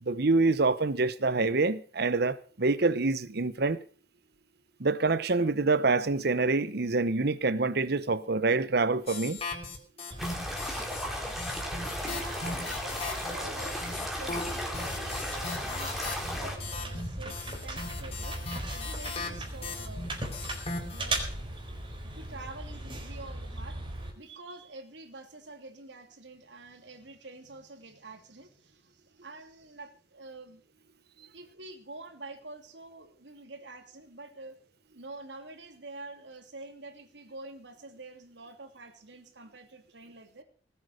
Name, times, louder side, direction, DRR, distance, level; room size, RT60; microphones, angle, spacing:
voice 1, 0.0-3.8 4.8-9.4, right 3 dB, 65° right, 1.0 m, -26 dB
sound 1, 9.1-11.0 11.4-21.2, left 3 dB, 35° left, 3.4 m, -38 dB
sound 2, 10.1-24.1, right 1 dB, 30° right, 4.1 m, -39 dB
sound 3, 10.2-16.6, equal, ahead, 3.3 m, -36 dB
voice 2, 12.0-13.8 14.2-20.4 20.9-21.4 22.1-23.8 24.1-30.6 31.3-34.6 34.9-40.4, right 2 dB, 80° right, 2.8 m, -47 dB
19.0 x 8.2 x 6.5 m
head